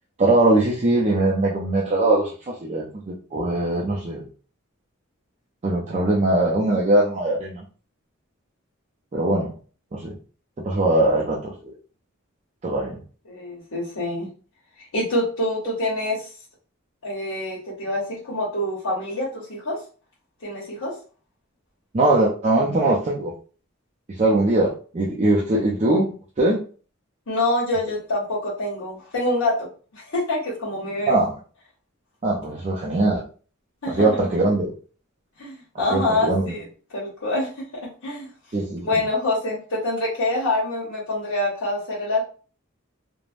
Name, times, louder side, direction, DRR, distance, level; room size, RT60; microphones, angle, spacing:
voice 1, 0.2-4.3 5.6-7.6 9.1-9.5 9.9-10.1 10.6-11.7 12.6-13.0 21.9-23.3 24.1-26.1 26.4-26.6 31.1-31.3 32.2-33.2 33.9-34.7 35.9-36.5 38.5-39.0, right 2 dB, 35° right, -4 dB, 0.4 m, -21 dB
voice 2, 13.3-14.3 14.8-16.3 17.0-19.8 20.4-20.9 27.3-29.7 29.9-31.2 33.8-34.2 35.4-36.6 36.9-37.5 38.0-38.3 38.8-42.2, left 1 dB, 80° left, -5 dB, 0.9 m, -26 dB
3.1 x 2.1 x 2.4 m, 0.39 s
head